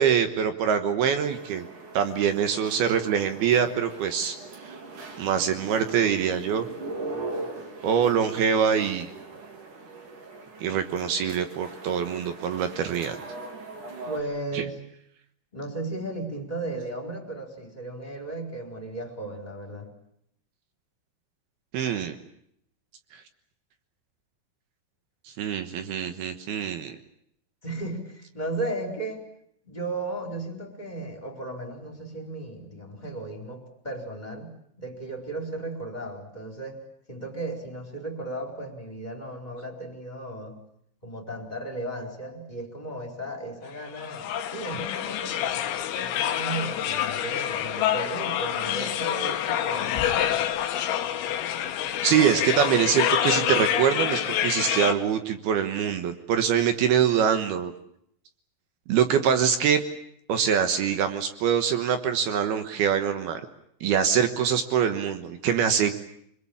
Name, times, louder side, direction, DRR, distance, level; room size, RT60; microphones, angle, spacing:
voice 1, 0.0-1.7 1.9-4.4 4.6-4.8 5.2-6.7 7.8-9.1 10.6-13.2 14.5-14.6 21.7-22.2 25.4-26.9 52.0-57.7 58.9-59.8 60.3-63.4 63.8-65.9, right 8 dB, 70° right, 8 dB, 2.6 m, -24 dB
sound 1, 1.2-14.2, right 2 dB, 45° right, 4.5 m, -40 dB
voice 2, 14.0-14.8 15.5-19.9 27.6-29.2 29.6-36.8 37.1-40.6 41.0-45.7 46.0-50.5, right 2 dB, 10° left, 1 dB, 3.7 m, -35 dB
sound 2, 44.0-54.9, left 10 dB, 90° left, 4.2 m, -27 dB
25.5 x 22.5 x 8.7 m, 0.73 s
omnidirectional pair, 5.8 m